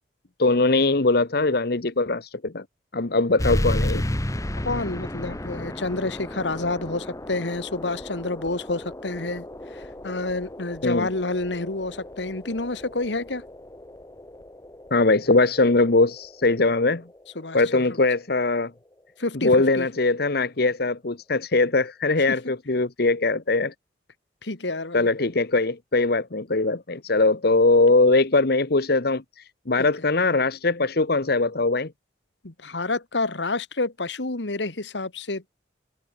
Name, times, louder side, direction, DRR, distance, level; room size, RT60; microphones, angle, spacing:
voice 1, 0.4-2.6 2.9-4.0 10.8-11.1 14.9-17.0 17.5-18.7 19.4-23.7 24.9-29.2 29.7-31.9, left 3 dB, 60° left, 1.1 m, -21 dB
sound 1, 3.4-18.5, left 1 dB, 20° left, 1.3 m, -33 dB
voice 2, 4.6-13.5 17.4-17.8 19.2-19.9 22.3-22.4 24.4-25.1 29.8-29.9 32.4-35.5, left 2 dB, 75° left, 1.8 m, -29 dB
head